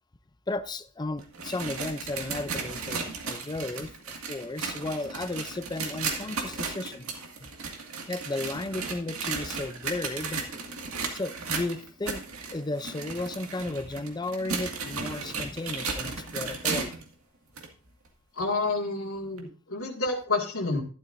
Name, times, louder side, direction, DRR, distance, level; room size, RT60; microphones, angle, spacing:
voice 1, 0.5-7.1 7.4-7.5 8.1-10.4 11.1-12.2 12.5-16.9, left 2 dB, 20° left, 13 dB, 0.5 m, -34 dB
sound 1, 1.2-17.1 17.6-17.7 18.4-18.5 19.4-19.5, right 4 dB, 90° right, 2.0 m, -35 dB
voice 2, 18.3-20.8, left 3 dB, 85° left, -3 dB, 2.1 m, -29 dB
12.0 x 11.5 x 2.6 m, 0.38 s
head